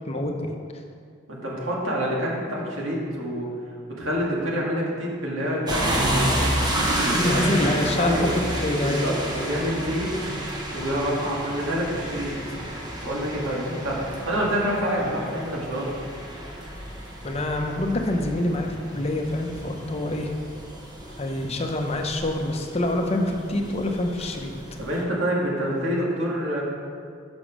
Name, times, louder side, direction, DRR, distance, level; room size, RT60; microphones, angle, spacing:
voice 1, 0.1-0.5 7.1-9.0 9.4-9.5 17.2-20.3 21.2-24.5, left 1 dB, 30° left, 3 dB, 0.7 m, -26 dB
voice 2, 1.3-3.5 3.9-6.5 6.9-7.6 8.0-8.3 8.8-10.1 10.4-12.3 13.0-15.9 24.8-26.6, equal, 85° right, -4 dB, 2.1 m, -27 dB
sound 1, 5.7-25.0, right 1 dB, 20° right, 1.1 m, -31 dB
7.0 x 6.2 x 6.1 m, 2.2 s
head